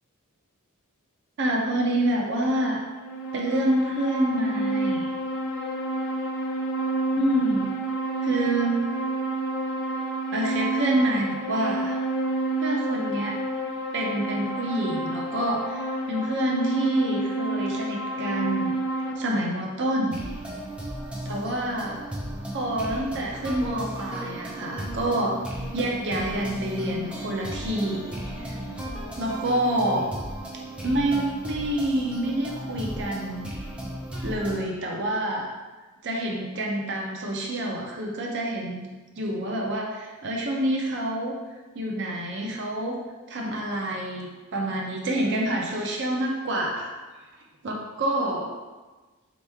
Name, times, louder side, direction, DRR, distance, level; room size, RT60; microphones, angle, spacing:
voice 1, 1.4-2.8 3.3-5.1 7.2-7.7 8.2-8.8 10.3-12.0 12.6-13.4 13.9-18.7 19.2-20.2 21.2-22.0 22.5-25.4 25.7-28.1 28.4-28.6 29.2-30.1 30.8-33.5 34.2-35.5 36.0-38.9 39.2-41.3 41.7-43.0 43.3-46.9 47.6-48.5, right 1 dB, 55° right, -1 dB, 0.6 m, -27 dB
sound 1, 2.8-19.1, right 2 dB, 60° left, 0.5 m, -29 dB
sound 2, 20.1-34.6, right 1 dB, 5° right, 0.6 m, -35 dB
4.4 x 2.9 x 3.4 m, 1.3 s
head